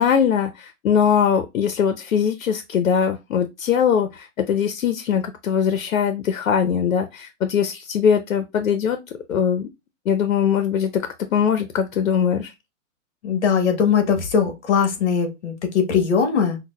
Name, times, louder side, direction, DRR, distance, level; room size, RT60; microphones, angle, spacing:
voice 1, 0.0-9.0 9.3-9.7 10.1-12.5, left 7 dB, 85° left, 0.7 m, -21 dB
voice 2, 13.2-16.6, left 6 dB, 55° left, 1.2 m, -20 dB
5.8 x 2.2 x 2.2 m
hypercardioid pair, 165°, 40 cm